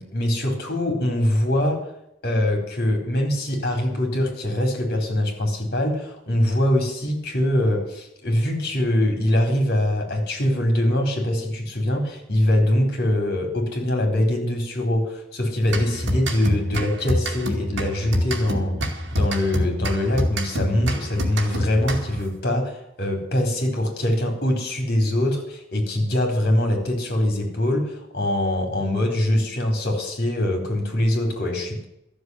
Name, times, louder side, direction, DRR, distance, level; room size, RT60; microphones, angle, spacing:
voice 1, 0.0-1.9 2.2-31.8, left 1 dB, 55° left, 2 dB, 4.2 m, -23 dB
sound 1, 15.7-22.3, equal, 85° right, 2.3 m, -26 dB
13.0 x 7.3 x 9.6 m, 0.80 s
head